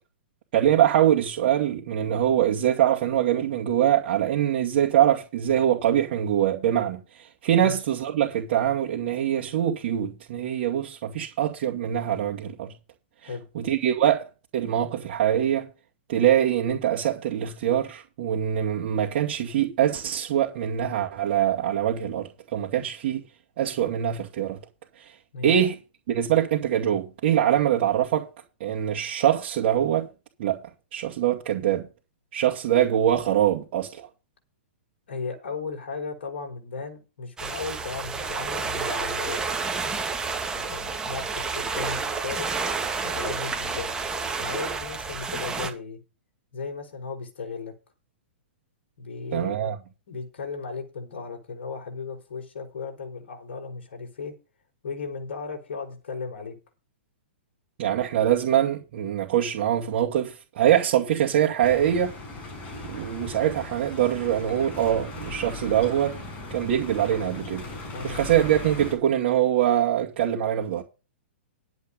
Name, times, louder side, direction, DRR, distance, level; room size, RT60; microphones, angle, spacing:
voice 1, 0.5-12.7 13.5-14.3 14.5-15.7 16.1-23.2 23.6-24.6 25.0-25.1 25.4-25.8 26.1-28.3 28.6-30.1 30.4-30.6 30.9-31.9 32.3-34.1 49.3-49.8 57.8-62.1 62.9-66.2 66.5-67.7 68.0-70.8, right 11 dB, 55° right, 2.4 m, -23 dB
voice 2, 35.1-39.6 40.6-42.5 43.0-44.0 44.4-46.0 46.5-47.7 49.0-49.7 50.1-54.4 54.8-56.6 67.9-68.2, left 4 dB, 70° left, 4.7 m, -36 dB
sound 1, 37.4-45.7, right 4 dB, 10° right, 2.2 m, -30 dB
sound 2, 61.6-69.0, left 2 dB, 30° left, 5.5 m, -38 dB
11.5 x 8.1 x 5.4 m
hypercardioid pair, 125°, 6 cm